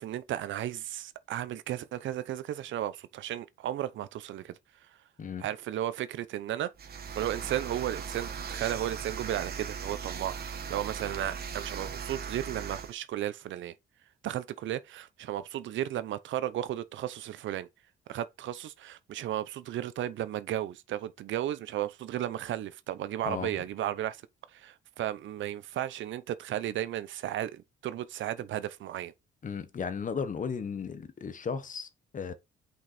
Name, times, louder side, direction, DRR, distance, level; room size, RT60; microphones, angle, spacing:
voice 1, 0.0-4.5 5.4-6.7 7.1-13.7 14.2-17.7 18.1-24.2 24.5-29.1, right 12 dB, 75° right, 0.7 m, -34 dB
sound 1, 6.8-12.9, right 6 dB, 50° right, 1.3 m, -38 dB
voice 2, 23.2-23.6 29.4-32.3, left 6 dB, 40° left, 1.0 m, -35 dB
6.1 x 5.3 x 4.2 m
cardioid pair, 90°, 20 cm